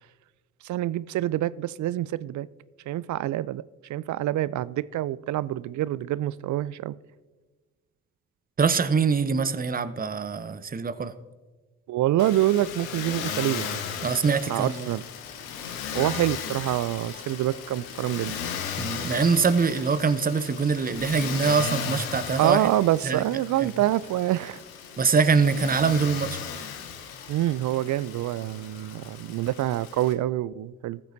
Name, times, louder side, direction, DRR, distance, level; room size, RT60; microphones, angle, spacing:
voice 1, 0.6-2.5 2.9-3.6 3.9-6.9 11.9-13.7 14.5-15.0 15.9-18.4 22.4-24.6 27.3-31.0, right 14 dB, 45° right, 0.4 m, -26 dB
voice 2, 8.6-11.1 14.0-14.9 18.8-22.7 23.0-23.2 25.0-26.4, right 5 dB, 20° right, 0.8 m, -23 dB
Motor vehicle (road), 12.2-30.1, left 7 dB, 80° left, 1.0 m, -36 dB
18.5 x 7.5 x 2.7 m
hypercardioid pair, 40°, 41 cm